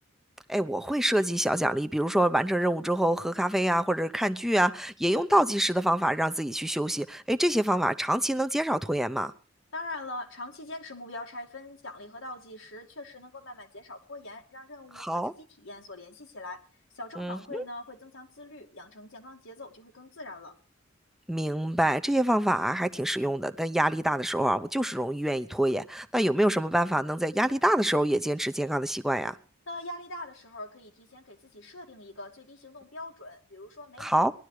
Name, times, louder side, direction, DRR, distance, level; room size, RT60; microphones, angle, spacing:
voice 1, 0.5-9.3 15.0-15.3 17.2-17.6 21.3-29.4 34.0-34.3, right 1 dB, ahead, 0.8 m, -26 dB
voice 2, 9.7-16.6 16.9-20.5 29.7-34.3, left 2 dB, 90° left, 2.5 m, -42 dB
19.0 x 12.0 x 4.9 m
head